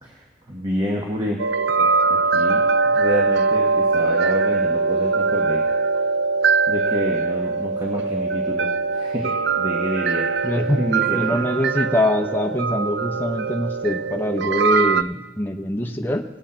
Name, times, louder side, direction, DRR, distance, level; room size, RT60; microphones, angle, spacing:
voice 1, 0.0-1.4 1.8-2.6 2.9-5.6 6.7-10.3 10.6-11.4, equal, 25° right, -1 dB, 1.1 m, -28 dB
sound 1, 1.4-15.0, right 4 dB, 75° right, 0.4 m, -21 dB
voice 2, 10.4-10.8 11.1-16.2, left 1 dB, 10° left, 3 dB, 0.7 m, -23 dB
19.0 x 8.1 x 4.4 m, 1.2 s
head